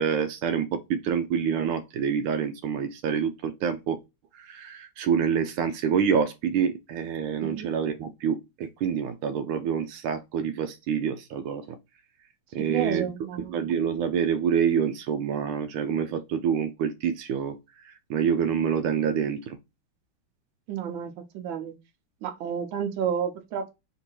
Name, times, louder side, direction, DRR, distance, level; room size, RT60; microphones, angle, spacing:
voice 1, 0.0-4.0 4.3-11.8 12.5-13.0 13.3-17.6 17.8-19.6, right 7 dB, 90° right, 1.4 m, -27 dB
voice 2, 12.7-13.6 20.7-21.7 22.2-23.7, right 8 dB, 70° right, 1.5 m, -31 dB
3.7 x 2.7 x 4.4 m
omnidirectional pair, 2.3 m